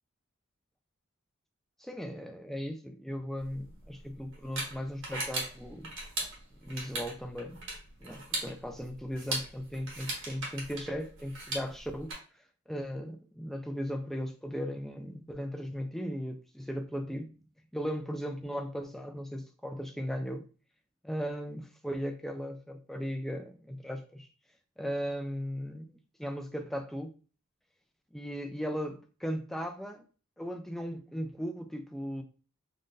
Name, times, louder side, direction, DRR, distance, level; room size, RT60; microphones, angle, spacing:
voice 1, 1.8-5.9 6.6-7.6 8.0-12.1 12.7-17.4 17.7-20.5 21.0-24.3 24.8-25.9 26.2-27.1 28.1-30.0 30.4-32.2, equal, ahead, 0.3 m, -37 dB
sound 1, 3.4-12.1, right 2 dB, 65° right, 1.2 m, -39 dB
2.6 x 2.5 x 3.7 m
head